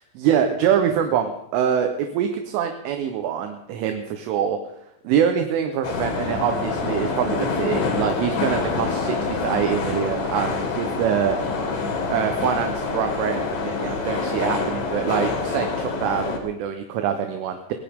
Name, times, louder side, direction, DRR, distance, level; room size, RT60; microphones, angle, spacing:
voice 1, 0.2-11.4 12.1-17.7, right 8 dB, 80° right, 6 dB, 3.5 m, -24 dB
sound 1, 5.8-16.4, left 4 dB, 50° left, 4.3 m, -26 dB
21.5 x 17.0 x 3.7 m, 0.82 s
omnidirectional pair, 5.8 m